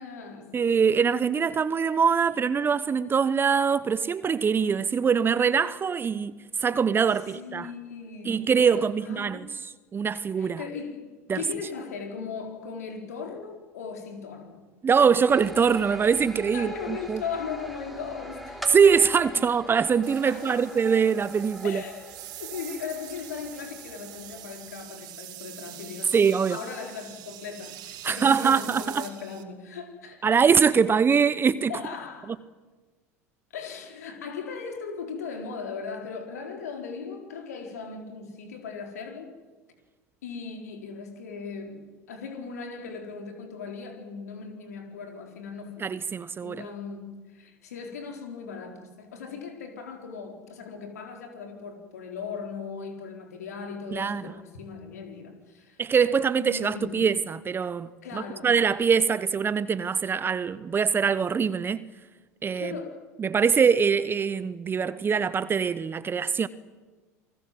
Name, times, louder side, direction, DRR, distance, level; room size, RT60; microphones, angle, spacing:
voice 1, 0.0-0.6 7.3-8.5 9.0-9.5 10.4-14.7 16.5-18.8 20.2-20.7 21.6-22.1 22.4-26.2 26.5-30.2 31.7-32.4 33.5-39.3 40.2-45.9 46.4-55.8 56.4-57.1 58.0-58.5 62.6-63.0, left 5 dB, 85° left, 4.5 m, -38 dB
voice 2, 0.5-7.7 8.2-10.6 11.3-11.4 14.8-17.2 18.7-21.8 26.1-26.6 28.0-29.1 30.2-31.7 45.8-46.6 53.9-54.3 55.8-61.9 62.4-62.8 63.2-66.5, right 6 dB, 25° right, 0.9 m, -23 dB
sound 1, 15.3-24.9, right 1 dB, ahead, 3.5 m, -43 dB
sound 2, 20.0-29.4, right 13 dB, 55° right, 3.2 m, -44 dB
28.5 x 20.5 x 7.8 m
hypercardioid pair, 80°, 8 cm